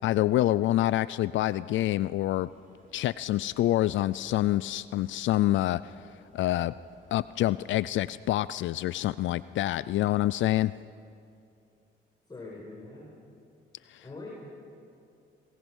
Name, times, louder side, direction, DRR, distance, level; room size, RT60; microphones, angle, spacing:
voice 1, 0.0-2.5 2.9-6.0 6.3-6.7 7.1-10.7 13.9-14.0, left 14 dB, 75° left, 17 dB, 0.4 m, -26 dB
sound 1, 2.5-10.5, right 2 dB, 40° right, 4.2 m, -61 dB
voice 2, 12.3-13.1 14.0-14.3, left 3 dB, 20° left, -3 dB, 5.2 m, -42 dB
26.0 x 20.5 x 6.3 m, 2.5 s
cardioid pair, 90°, 20 cm